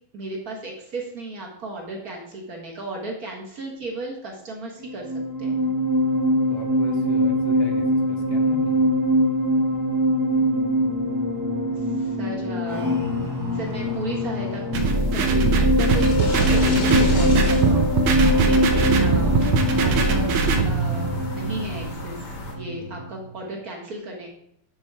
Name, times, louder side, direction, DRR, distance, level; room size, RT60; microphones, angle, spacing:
voice 1, 0.1-5.1 5.4-5.7 11.7-12.9 13.5-14.6 15.1-24.3, right 2 dB, 45° right, -1 dB, 1.7 m, -35 dB
sound 1, 4.8-23.3, equal, 15° right, 0.6 m, -23 dB
voice 2, 6.5-8.9, left 2 dB, 70° left, 3 dB, 1.9 m, -38 dB
sound 2, 14.7-22.5, left 1 dB, 35° left, 1.3 m, -33 dB
sound 3, 14.7-20.7, right 3 dB, 75° right, 1.6 m, -21 dB
8.7 x 4.2 x 4.7 m, 0.71 s
omnidirectional pair, 2.4 m